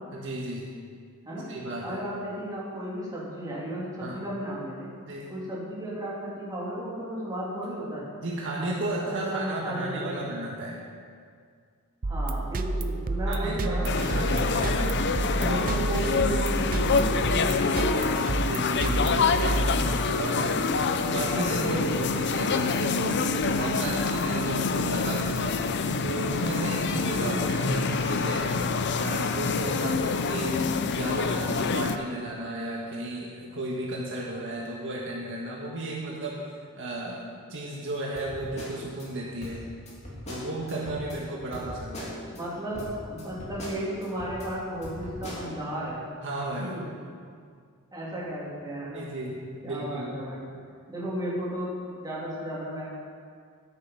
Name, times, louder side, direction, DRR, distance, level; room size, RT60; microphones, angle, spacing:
voice 1, 0.1-0.7 1.5-2.0 4.0-4.2 5.1-5.3 8.2-10.8 13.3-15.8 18.5-20.6 21.1-25.7 26.0-28.5 29.0-30.6 30.9-36.4 36.8-39.7 40.3-42.2 46.2-46.8 48.9-50.1, right 1 dB, 60° right, -4 dB, 1.6 m, -34 dB
voice 2, 1.8-4.9 5.3-8.1 9.1-10.3 12.0-15.0 15.4-18.3 27.1-27.4 41.5-41.6 42.3-46.0 46.6-46.9 47.9-49.1 49.6-50.4 50.9-52.9, right 1 dB, 15° right, -7 dB, 3.1 m, -34 dB
sound 1, 12.0-20.2, right 2 dB, 40° right, 0.6 m, -30 dB
sound 2, 13.8-32.0, left 4 dB, 50° left, 0.6 m, -26 dB
sound 3, 38.2-39.1 39.4-41.2 41.5-42.4 42.7-44.5 44.8-45.5, left 1 dB, 30° left, 2.7 m, -40 dB
13.0 x 8.3 x 5.6 m, 2.1 s
head